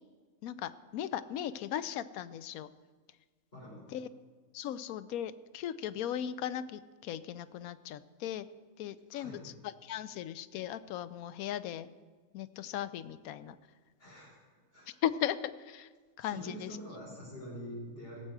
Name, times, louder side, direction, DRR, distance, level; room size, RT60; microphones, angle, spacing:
voice 1, 0.4-2.7 3.9-4.1 4.5-8.5 8.8-11.9 12.3-13.6 15.0-15.9 16.2-16.8, left 10 dB, 85° left, 14 dB, 1.0 m, -37 dB
voice 2, 3.5-3.8 4.6-4.7 9.1-9.4 14.0-14.4 14.7-15.0 16.2-18.2, equal, 45° left, -5 dB, 4.6 m, -45 dB
17.0 x 7.7 x 4.7 m, 1.4 s
omnidirectional pair, 1.5 m